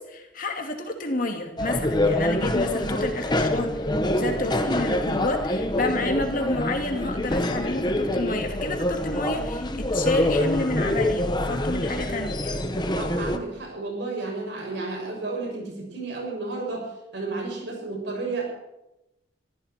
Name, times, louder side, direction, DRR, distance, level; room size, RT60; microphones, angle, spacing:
voice 1, 0.0-3.8 4.1-12.5, left 2 dB, 45° left, 3 dB, 2.6 m, -29 dB
sound 1, 1.6-13.4, left 1 dB, 25° left, 1.3 m, -26 dB
voice 2, 12.9-16.8 17.1-18.4, right 3 dB, 65° right, -1 dB, 6.6 m, -32 dB
21.0 x 15.0 x 4.5 m, 0.92 s
head